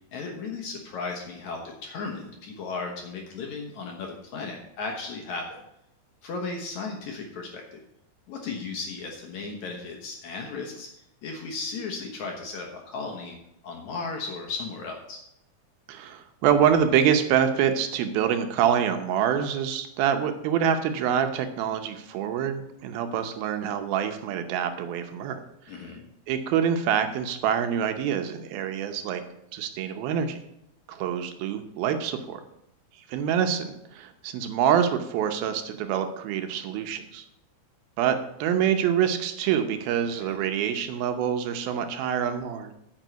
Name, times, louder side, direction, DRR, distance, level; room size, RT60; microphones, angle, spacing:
voice 1, 0.1-5.6 6.2-7.8 8.3-10.9 11.2-13.4 13.6-15.2 25.7-26.1 40.1-40.4, left 4 dB, 65° left, 1 dB, 2.1 m, -35 dB
voice 2, 15.9-25.4 25.7-25.8 26.3-29.2 29.5-30.4 30.9-32.4 33.1-37.2 38.0-42.7, right 8 dB, 80° right, 7 dB, 2.6 m, -26 dB
9.1 x 5.3 x 7.9 m, 0.80 s
omnidirectional pair, 4.4 m